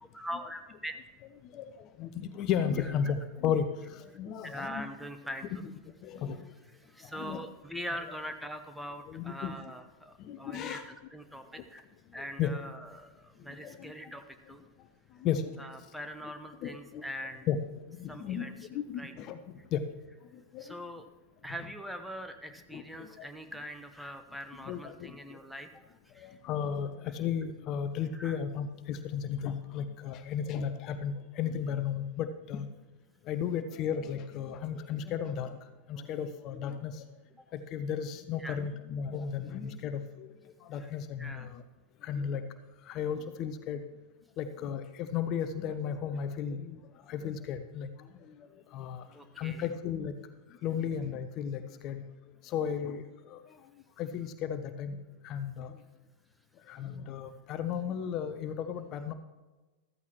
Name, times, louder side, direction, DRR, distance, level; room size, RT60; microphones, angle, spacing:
voice 1, 0.1-0.9 2.8-3.1 4.4-5.6 6.1-6.2 6.7-11.8 12.1-14.6 15.6-17.5 18.1-18.7 19.0-19.1 20.6-21.1 21.4-26.4 28.1-28.4 38.4-38.6 40.7-40.9 41.2-41.5 49.1-49.7, equal, ahead, 7 dB, 0.9 m, -42 dB
voice 2, 1.5-4.9 5.6-5.7 6.0-6.4 7.1-7.4 9.1-9.5 10.2-10.8 12.4-12.5 13.6-13.9 15.2-15.5 16.2-16.3 16.6-17.0 17.5-17.6 18.0-19.4 19.7-19.8 20.5-20.7 22.7-23.3 24.6-25.4 26.2-32.7 33.3-35.6 35.9-37.0 37.5-40.3 40.7-41.6 42.0-42.4 42.9-43.8 44.4-46.8 47.1-47.9 48.7-49.0 49.4-50.1 50.6-52.0 52.4-53.4 54.0-55.0 55.2-55.7 56.7-59.1, left 8 dB, 35° left, 10 dB, 0.7 m, -34 dB
14.0 x 13.5 x 3.0 m, 1.2 s
figure-of-eight pair, 90°, 0 cm